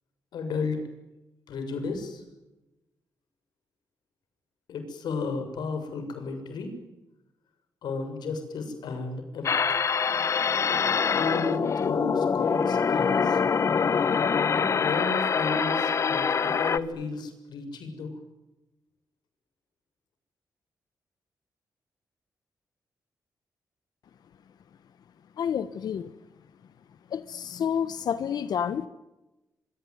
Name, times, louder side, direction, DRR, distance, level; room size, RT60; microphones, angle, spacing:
voice 1, 0.3-0.8 1.5-2.2 4.7-6.7 7.8-9.5 11.1-13.4 14.5-18.2, left 4 dB, 85° left, 7 dB, 7.0 m, -33 dB
sound 1, 9.4-16.8, left 6 dB, 45° left, 1.1 m, -25 dB
voice 2, 25.4-26.1 27.1-28.9, left 8 dB, 70° left, 13 dB, 1.2 m, -29 dB
25.0 x 24.5 x 9.6 m, 1.0 s
wide cardioid pair, 135°, 7 cm